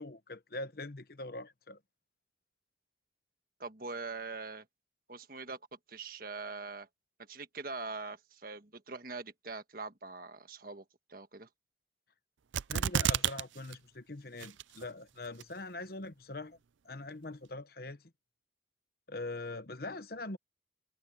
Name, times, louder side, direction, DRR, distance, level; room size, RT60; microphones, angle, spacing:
voice 1, 0.0-1.8 12.7-16.6 16.8-18.0 19.1-20.4, left 2 dB, 50° left, 1.1 m, -42 dB
voice 2, 3.6-4.6 5.1-5.6 5.9-6.9 7.3-11.5, right 3 dB, 50° right, 1.5 m, -43 dB
sound 1, 12.5-13.4 13.7-13.8 14.4-14.9 15.4-15.5, right 8 dB, 80° right, 0.5 m, -29 dB
head